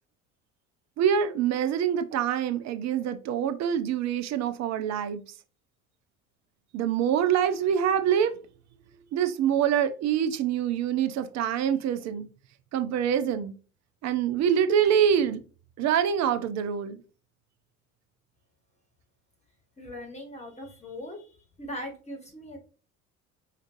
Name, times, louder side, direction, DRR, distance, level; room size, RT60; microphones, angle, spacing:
voice 1, 1.0-5.2 6.7-8.4 9.1-12.3 12.7-13.5 14.0-15.4 15.8-17.0, right 8 dB, 40° right, 0.6 m, -25 dB
voice 2, 19.8-22.6, left 1 dB, 15° left, 1.2 m, -40 dB
5.2 x 2.4 x 2.5 m
figure-of-eight pair, 55°, 41 cm